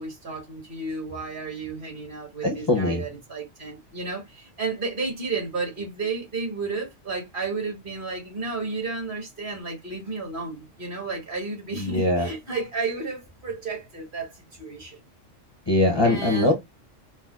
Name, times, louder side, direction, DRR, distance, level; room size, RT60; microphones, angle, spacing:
voice 1, 0.0-15.0 16.0-16.5, right 4 dB, 45° right, 1.4 m, -32 dB
voice 2, 2.4-3.0 11.8-12.3 15.7-16.5, left 2 dB, 30° left, 0.5 m, -22 dB
4.1 x 2.0 x 2.3 m
omnidirectional pair, 1.3 m